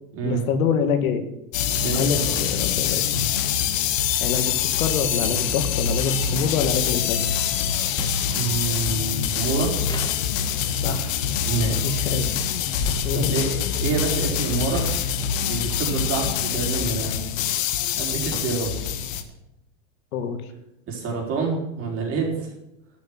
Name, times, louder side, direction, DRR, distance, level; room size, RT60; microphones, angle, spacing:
voice 1, 0.2-1.3 1.9-3.2 4.2-7.2 10.8-11.2 11.8-12.3 13.0-13.4 20.1-20.4, left 6 dB, 80° left, 8 dB, 2.1 m, -26 dB
sound 1, 1.5-19.2, left 8 dB, 65° left, 1.6 m, -25 dB
voice 2, 1.7-2.4 3.1-3.3 8.3-9.7 11.4-12.1 12.8-14.9 15.4-17.2 18.0-18.7 20.9-22.5, right 5 dB, 30° right, -1 dB, 5.0 m, -28 dB
sound 2, 7.9-8.5 9.8-10.7 12.7-13.2 14.1-14.3 14.7-17.1 17.5-19.0, left 3 dB, 10° left, 1.2 m, -37 dB
12.5 x 8.5 x 8.0 m, 0.88 s
supercardioid pair, 150°, 42 cm